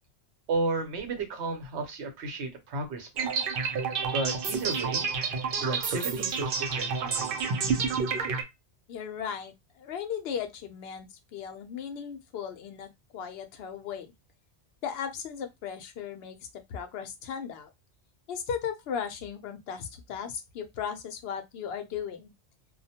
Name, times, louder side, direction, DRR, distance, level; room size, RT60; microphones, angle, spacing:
voice 1, 0.5-3.4 4.1-5.1 5.6-7.8, right 3 dB, 80° right, 1.0 m, -33 dB
sound 1, 3.2-8.4, right 5 dB, 60° right, 0.7 m, -29 dB
voice 2, 8.9-14.1 14.8-16.4 16.7-17.7 18.3-22.3, left 7 dB, 70° left, 0.8 m, -36 dB
2.3 x 2.1 x 2.7 m
omnidirectional pair, 1.1 m